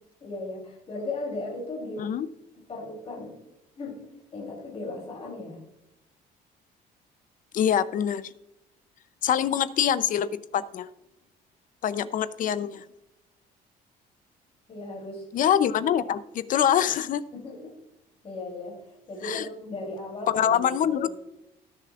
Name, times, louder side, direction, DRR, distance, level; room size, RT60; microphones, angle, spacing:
voice 1, 0.2-2.1 2.6-3.4 3.8-4.0 4.3-5.6 14.7-15.2 17.3-17.8 18.2-21.1, left 2 dB, 35° left, -1 dB, 3.4 m, -37 dB
voice 2, 7.5-8.3 9.2-10.9 11.8-12.9 15.3-17.2 19.2-19.5 20.3-21.1, left 9 dB, 55° left, 15 dB, 0.6 m, -24 dB
18.5 x 6.9 x 2.5 m, 0.87 s
cardioid pair, 110°, 17 cm